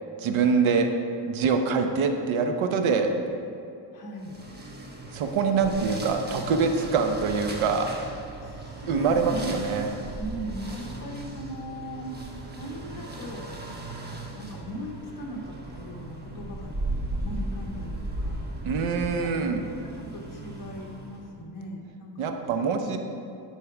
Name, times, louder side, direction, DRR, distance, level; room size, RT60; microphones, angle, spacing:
voice 1, 0.2-0.9 1.3-3.1 5.1-7.9 8.9-9.9 18.6-19.6 22.2-23.0, right 5 dB, 80° right, 5 dB, 0.9 m, -24 dB
voice 2, 3.9-4.4 8.4-9.6 10.1-13.4 14.3-16.7 17.1-18.5 19.2-19.8 20.1-22.3, equal, 40° left, -1 dB, 1.5 m, -39 dB
sound 1, 4.2-21.3, right 1 dB, 20° right, 1.0 m, -37 dB
11.0 x 4.8 x 4.9 m, 2.6 s
cardioid pair, 140°, 48 cm